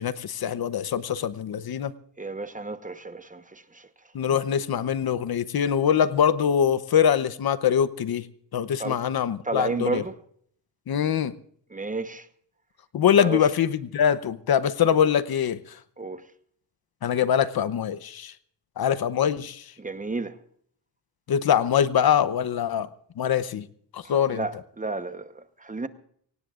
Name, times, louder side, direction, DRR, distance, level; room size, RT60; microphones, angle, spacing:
voice 1, 0.0-1.9 4.1-8.3 8.5-10.0 10.9-11.3 12.9-15.8 17.0-18.3 18.8-19.7 21.3-22.9 23.2-23.7 23.9-24.4, left 8 dB, 55° left, 0.8 m, -23 dB
voice 2, 2.2-3.9 8.8-9.0 9.4-10.2 11.7-12.3 13.2-13.5 16.0-16.3 19.8-20.4 24.0-25.9, right 3 dB, 20° right, 1.0 m, -32 dB
24.0 x 18.5 x 2.5 m
cardioid pair, 100°, 44 cm